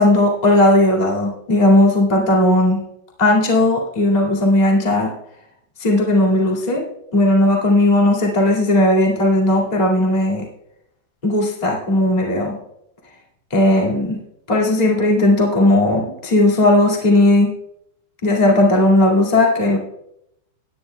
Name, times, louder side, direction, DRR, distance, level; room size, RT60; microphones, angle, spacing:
voice 1, 0.0-2.8 3.2-5.1 5.8-6.8 7.1-10.4 11.2-12.5 13.5-14.2 14.5-17.5 18.2-19.8, left 1 dB, 20° left, -2 dB, 1.1 m, -16 dB
18.5 x 9.8 x 2.3 m, 0.77 s
omnidirectional pair, 4.7 m